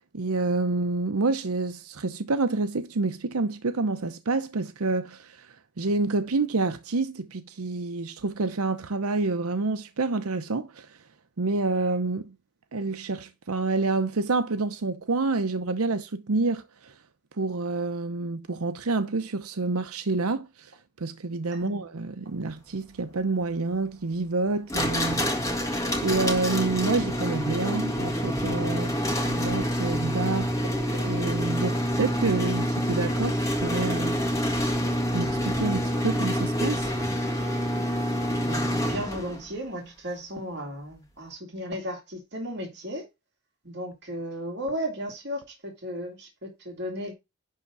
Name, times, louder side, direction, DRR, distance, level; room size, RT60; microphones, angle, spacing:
voice 1, 0.1-11.1 11.4-12.3 12.7-17.0 17.3-30.5 30.9-34.2 35.1-36.9, right 3 dB, 90° right, 0.8 m, -28 dB
sound 1, 24.7-39.4, equal, 15° left, 1.9 m, -27 dB
voice 2, 38.4-43.0 43.6-47.1, equal, 50° right, 2.5 m, -35 dB
11.0 x 3.7 x 6.1 m
head